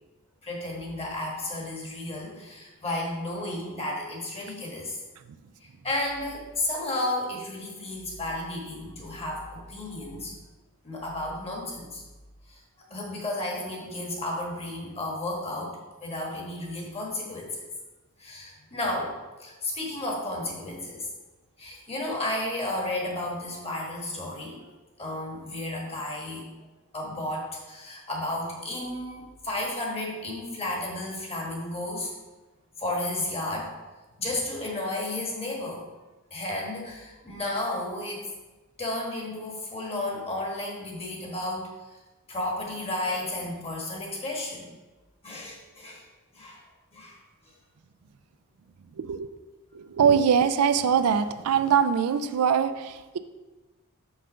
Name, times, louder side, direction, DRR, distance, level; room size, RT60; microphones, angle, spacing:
voice 1, 0.4-5.0 5.6-10.3 10.8-12.0 12.5-12.6 12.9-15.7 16.0-17.6 18.2-19.1 19.4-21.1 21.6-24.6 25.0-26.5 26.9-32.1 32.8-33.7 34.2-35.8 36.3-38.3 38.8-41.7 42.3-44.7 45.2-46.0 46.3-46.6 46.9-47.2, left 1 dB, 25° left, -2 dB, 1.4 m, -33 dB
voice 2, 49.0-49.3 49.7-53.2, right 7 dB, 80° right, 11 dB, 0.4 m, -23 dB
5.6 x 3.8 x 5.6 m, 1.2 s
head